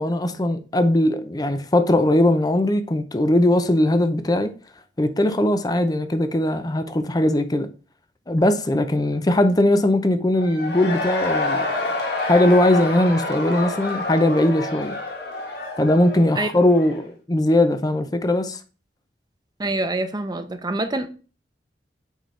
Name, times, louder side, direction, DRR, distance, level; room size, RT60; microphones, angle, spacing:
voice 1, 0.0-4.5 5.0-7.7 8.3-11.8 12.2-15.0 15.8-18.6, left 1 dB, 20° left, 0.6 m, -20 dB
Cheering / Crowd, 10.4-17.1, left 2 dB, 65° left, 1.3 m, -28 dB
voice 2, 19.6-21.1, right 2 dB, 25° right, 0.7 m, -25 dB
6.4 x 5.1 x 3.3 m
head